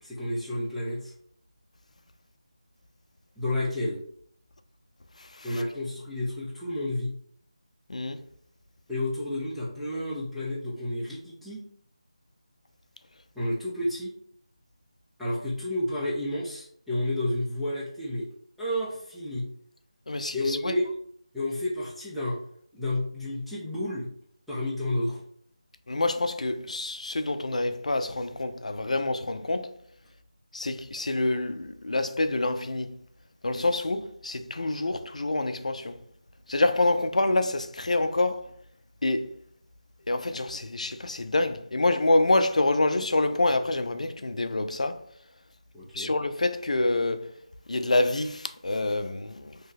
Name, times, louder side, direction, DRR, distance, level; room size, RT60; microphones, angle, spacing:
voice 1, 0.0-1.1 3.4-4.0 5.4-7.1 8.9-11.6 13.4-14.1 15.2-18.3 18.6-19.5 20.3-20.8 21.3-22.4 22.7-24.1 24.5-25.2 45.7-46.1, left 1 dB, ahead, 0.3 m, -30 dB
voice 2, 5.2-5.6 7.9-8.2 20.1-20.8 25.9-29.7 30.5-33.0 33.4-36.0 36.5-38.5 39.0-39.3 40.1-45.1 45.9-47.3 47.7-49.6, left 2 dB, 85° left, 0.4 m, -27 dB
2.7 x 2.1 x 3.7 m
figure-of-eight pair, 170°, 4 cm